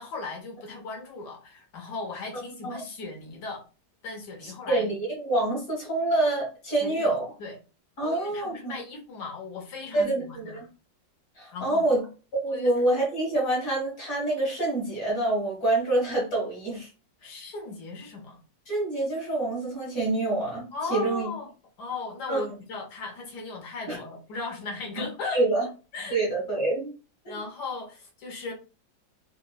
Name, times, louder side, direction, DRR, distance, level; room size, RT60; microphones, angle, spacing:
voice 1, 0.0-3.6 4.0-4.9 6.8-7.6 8.0-10.6 11.5-11.9 12.5-12.7 17.2-18.4 20.7-21.5 21.8-25.5 25.9-26.2 27.3-28.5, left 3 dB, 65° left, 0 dB, 1.3 m, -37 dB
voice 2, 4.4-7.3 8.0-8.8 9.9-10.7 11.4-12.0 12.3-16.9 18.7-21.3 22.3-22.4 23.9-24.0 25.3-25.7 26.1-26.9 27.2-27.4, right 2 dB, 50° left, -2 dB, 1.6 m, -26 dB
3.7 x 2.0 x 2.2 m, 0.34 s
omnidirectional pair, 2.0 m